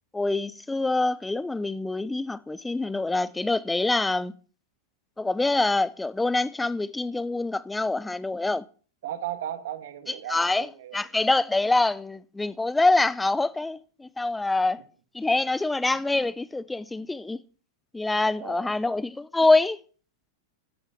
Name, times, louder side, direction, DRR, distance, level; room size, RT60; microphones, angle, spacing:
voice 1, 0.1-4.3 5.2-8.6 10.1-14.8 15.1-17.4 17.9-19.8, left 2 dB, 5° left, 0.5 m, -25 dB
voice 2, 9.0-11.0 18.2-18.9, right 11 dB, 70° right, 2.1 m, -36 dB
14.0 x 8.6 x 5.9 m
supercardioid pair, 150°, 0 cm